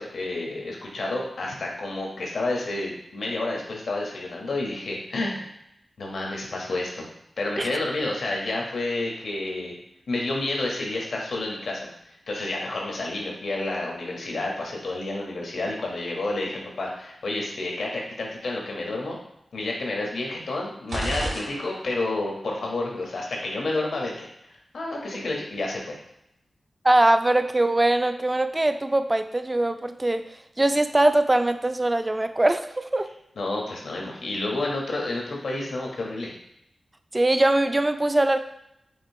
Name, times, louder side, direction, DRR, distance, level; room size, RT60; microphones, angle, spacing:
voice 1, 0.0-5.5 6.0-7.1 7.4-9.8 10.1-19.2 19.5-26.0 33.4-36.3, left 2 dB, 85° left, -1 dB, 0.9 m, -30 dB
sound 1, 20.9-22.2, right 1 dB, 85° right, 1.2 m, -32 dB
voice 2, 26.8-30.2 30.6-33.1 37.1-38.4, right 1 dB, 25° right, 9 dB, 0.3 m, -22 dB
5.0 x 3.1 x 2.7 m, 0.80 s
cardioid pair, 60°, 0 cm